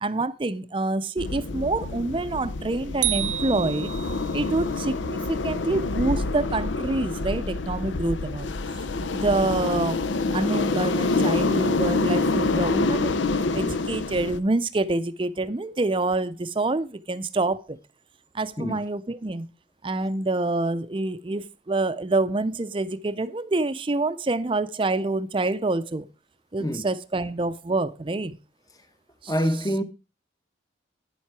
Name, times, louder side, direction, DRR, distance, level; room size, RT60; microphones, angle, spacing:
voice 1, 0.0-3.9 4.3-8.5 9.1-10.0 10.3-13.1 13.5-17.8 18.3-19.5 19.8-26.1 26.5-28.4 29.2-29.3, right 2 dB, 30° right, 0.5 m, -26 dB
sound 1, 1.2-14.4, left 3 dB, 85° left, 0.7 m, -27 dB
sound 2, 3.0-4.4, right 13 dB, 70° right, 0.8 m, -29 dB
voice 2, 29.3-29.8, equal, 20° left, 0.9 m, -26 dB
9.7 x 7.3 x 4.7 m
head